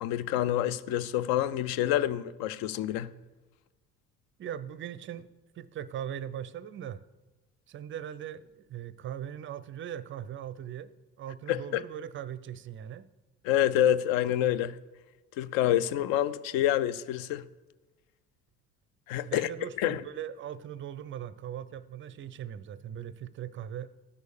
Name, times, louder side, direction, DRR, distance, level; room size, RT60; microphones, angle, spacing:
voice 1, 0.0-3.1 11.5-11.8 13.4-14.8 15.4-17.5 19.1-19.5 19.8-20.0, left 12 dB, 50° left, 0.6 m, -27 dB
voice 2, 4.4-5.3 5.5-7.0 7.7-13.1 19.3-23.9, right 10 dB, 25° right, 0.5 m, -40 dB
14.0 x 6.3 x 6.8 m
figure-of-eight pair, 50°, 45 cm